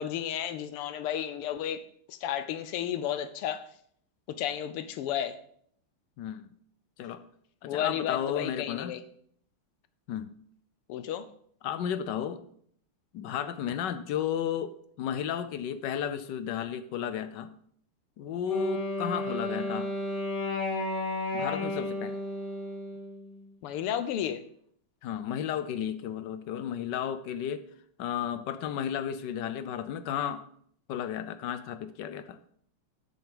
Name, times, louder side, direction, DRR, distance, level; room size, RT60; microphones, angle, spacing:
voice 1, 0.0-1.8 2.1-3.7 4.4-5.4 7.7-9.0 10.9-11.3 23.6-24.4, left 10 dB, 90° left, 1.7 m, -32 dB
voice 2, 6.2-6.5 7.0-7.2 7.6-8.9 10.1-10.3 11.6-12.4 13.1-17.5 18.2-20.0 21.3-22.2 25.0-27.6 28.0-30.4 30.9-32.4, left 9 dB, 70° left, 1.1 m, -33 dB
Wind instrument woodwind instrument, 18.5-23.5, left 1 dB, 15° left, 2.1 m, -33 dB
8.2 x 6.5 x 5.3 m
omnidirectional pair, 2.4 m